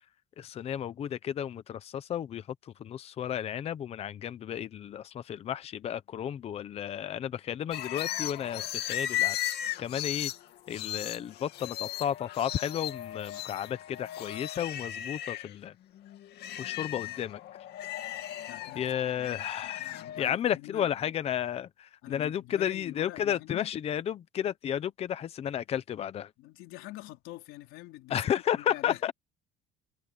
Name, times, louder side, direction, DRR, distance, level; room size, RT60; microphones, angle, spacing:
voice 1, 0.4-2.4 2.8-9.4 9.8-10.3 10.7-15.7 16.6-17.4 17.9-18.2 18.7-26.3 28.1-29.1, left 10 dB, 30° left, 0.7 m, -33 dB
sound 1, 7.7-15.5 16.0-20.3, left 12 dB, 55° left, 2.2 m, -36 dB
voice 2, 18.5-18.9 19.1-21.1 22.0-23.7 26.4-29.1, left 17 dB, 85° left, 3.8 m, -46 dB
cardioid pair, 180°, 20 cm